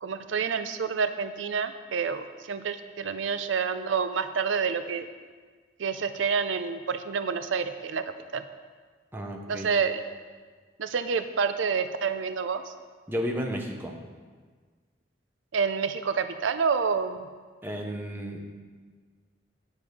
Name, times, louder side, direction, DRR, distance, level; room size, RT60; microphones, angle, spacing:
voice 1, 0.0-5.1 5.8-8.0 8.3-8.4 9.5-10.0 10.8-12.6 15.5-17.2, right 5 dB, 85° right, 10 dB, 0.5 m, -28 dB
voice 2, 9.1-9.7 13.1-13.9 17.6-18.4, equal, 10° right, 1 dB, 0.8 m, -32 dB
9.4 x 7.0 x 4.9 m, 1.5 s
head